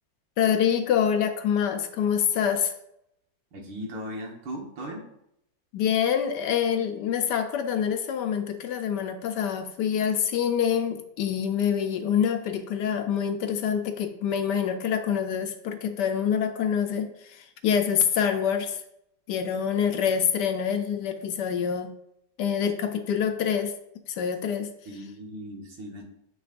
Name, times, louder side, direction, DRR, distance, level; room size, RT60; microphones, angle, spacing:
voice 1, 0.4-2.7 5.7-18.8 19.3-21.9 22.4-23.7 24.1-24.7, left 8 dB, 70° left, 7 dB, 1.2 m, -26 dB
voice 2, 3.5-5.0 24.9-26.1, equal, 80° right, 0 dB, 2.0 m, -37 dB
8.0 x 6.2 x 2.5 m, 0.77 s
omnidirectional pair, 2.0 m